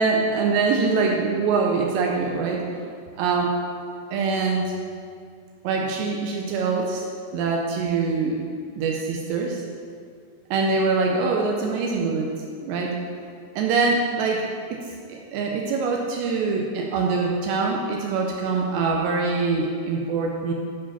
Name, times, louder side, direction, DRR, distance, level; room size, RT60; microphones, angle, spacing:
voice 1, 0.0-2.8 3.2-3.5 4.1-4.7 5.6-7.1 7.3-8.4 8.7-9.6 10.5-12.3 12.6-12.9 13.6-20.5, right 4 dB, 85° right, 0 dB, 2.5 m, -24 dB
9.8 x 5.0 x 5.6 m, 2.2 s
omnidirectional pair, 5.7 m